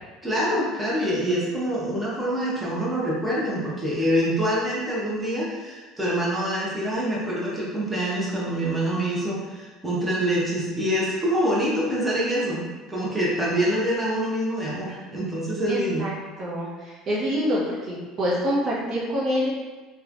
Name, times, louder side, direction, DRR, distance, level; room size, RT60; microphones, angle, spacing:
voice 1, 0.2-16.0, equal, 10° right, -6 dB, 0.8 m, -25 dB
voice 2, 15.7-16.1 16.4-19.5, equal, 45° right, -5 dB, 0.7 m, -26 dB
3.0 x 2.2 x 2.5 m, 1.2 s
supercardioid pair, 105°, 0 cm